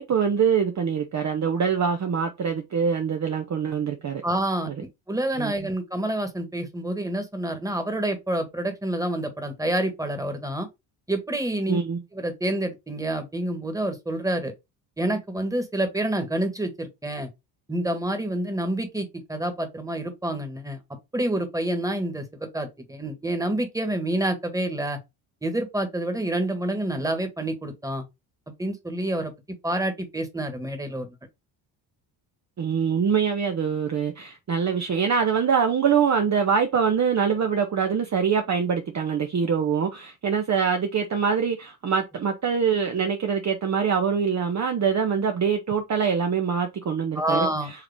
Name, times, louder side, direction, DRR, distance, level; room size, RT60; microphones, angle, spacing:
voice 1, 0.0-4.2 5.4-5.7 11.7-12.0 32.6-47.5, right 6 dB, 35° right, 0.8 m, -24 dB
voice 2, 4.2-10.7 11.1-11.8 12.1-14.5 15.0-17.3 17.7-20.8 21.1-25.0 25.4-28.1 28.6-29.3 29.6-31.1 47.1-47.7, right 1 dB, 5° right, 1.6 m, -28 dB
4.8 x 2.9 x 3.5 m
supercardioid pair, 65°, 49 cm